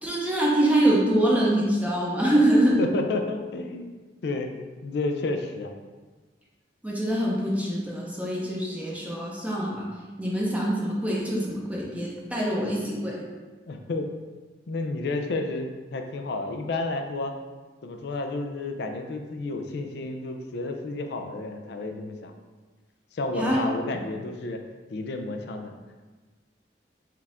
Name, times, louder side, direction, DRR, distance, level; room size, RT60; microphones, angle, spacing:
voice 1, 0.0-2.8 6.8-9.9 10.2-13.2 23.4-23.6, right 1 dB, 10° right, -5 dB, 0.6 m, -24 dB
voice 2, 2.8-4.0 4.2-4.5 4.8-5.7 13.7-14.1 14.7-17.3 17.8-22.3 23.1-24.6 24.9-25.7, left 2 dB, 65° left, 5 dB, 0.4 m, -31 dB
4.6 x 2.4 x 3.5 m, 1.3 s
head